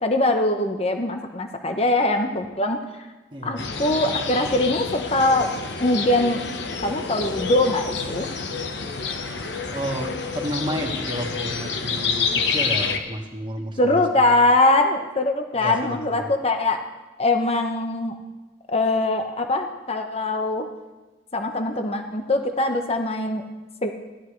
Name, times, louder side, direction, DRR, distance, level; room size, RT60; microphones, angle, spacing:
voice 1, 0.0-3.1 3.4-5.5 5.8-6.4 6.8-8.3 13.8-16.8 17.2-18.2 18.7-20.7 21.3-23.4 23.8-23.9, left 2 dB, 35° left, 5 dB, 1.0 m, -22 dB
voice 2, 3.3-3.7 9.7-14.0 15.5-16.3, equal, 30° right, 1 dB, 1.6 m, -31 dB
sound 1, 3.6-13.0, left 5 dB, 80° left, 1.1 m, -28 dB
16.0 x 12.0 x 3.3 m, 1.1 s
head